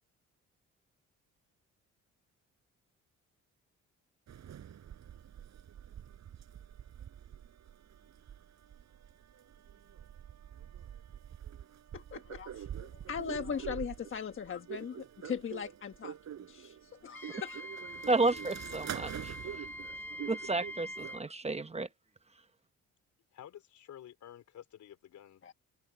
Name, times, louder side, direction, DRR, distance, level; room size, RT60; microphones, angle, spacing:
sound 1, 4.3-21.2, right 9 dB, 65° right, 4.4 m, -46 dB
voice 1, 11.9-17.6 25.4-25.5, left 7 dB, 45° left, 1.3 m, -40 dB
Wind instrument woodwind instrument, 17.1-21.3, equal, 5° left, 1.9 m, -44 dB
voice 2, 18.1-19.6 20.3-21.9, right 3 dB, 20° right, 1.0 m, -32 dB
voice 3, 23.3-25.4, left 11 dB, 70° left, 4.4 m, -51 dB
cardioid pair, 90°, 30 cm